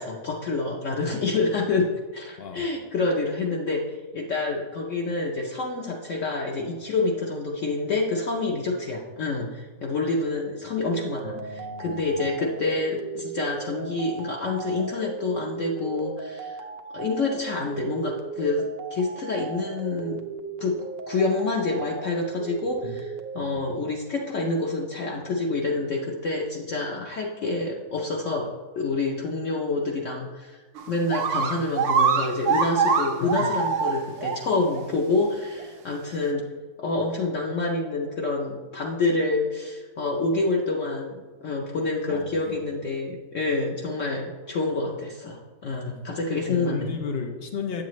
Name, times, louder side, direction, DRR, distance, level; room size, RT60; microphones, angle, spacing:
voice 1, 0.0-1.8 2.1-3.8 4.1-16.6 16.9-18.6 18.9-20.2 20.6-28.5 28.8-30.6 30.9-36.4 36.8-46.9, left 3 dB, 60° left, -1 dB, 0.9 m, -27 dB
voice 2, 2.4-2.7 11.3-12.1 22.6-23.0 23.4-23.6 33.2-33.5 42.1-42.6 45.6-46.0 46.4-47.8, left 5 dB, 80° left, 4 dB, 0.5 m, -34 dB
sound 1, 10.8-23.4, right 5 dB, 90° right, 1.3 m, -37 dB
sound 2, 30.8-30.9 31.1-34.4 34.7-34.8 35.6-35.7, right 5 dB, 65° right, 0.7 m, -23 dB
7.9 x 7.5 x 3.1 m, 1.3 s
omnidirectional pair, 1.8 m